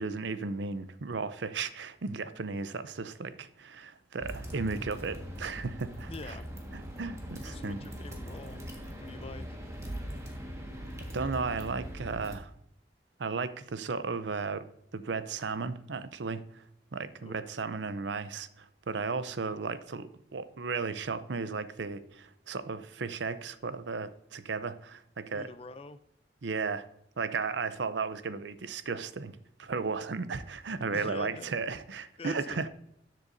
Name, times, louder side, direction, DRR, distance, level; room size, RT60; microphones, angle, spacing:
voice 1, 0.0-6.4 6.7-7.8 11.1-12.5 13.2-14.6 14.9-16.6 16.9-25.5 26.4-26.9 27.2-32.7, right 4 dB, 75° right, 13 dB, 0.6 m, -35 dB
sound 1, 4.2-12.3, equal, 15° right, 1.6 m, -41 dB
voice 2, 6.1-6.5 7.5-8.6 9.0-9.5 17.2-17.4 25.3-26.0 30.9-31.6 32.2-32.7, left 3 dB, 30° left, 11 dB, 0.5 m, -45 dB
13.0 x 7.7 x 2.7 m, 0.75 s
head